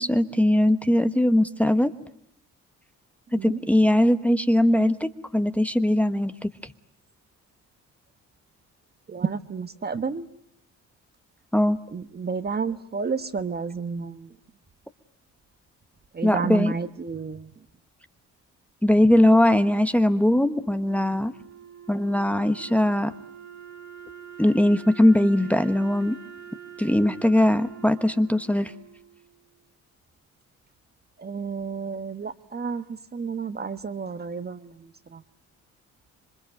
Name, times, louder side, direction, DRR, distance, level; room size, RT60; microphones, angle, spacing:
voice 1, 0.0-1.9 3.3-6.7 11.5-11.8 16.2-16.7 18.8-21.3 21.9-23.1 24.4-26.2 26.8-28.7, left 1 dB, 5° left, 9 dB, 1.1 m, -20 dB
voice 2, 9.1-10.3 11.9-14.3 16.1-17.6 31.2-35.2, right 5 dB, 30° right, 11 dB, 1.2 m, -31 dB
Wind instrument woodwind instrument, 20.5-29.6, right 8 dB, 65° right, 2.6 m, -45 dB
27.0 x 23.5 x 8.8 m, 0.69 s
cardioid pair, 90°, 30 cm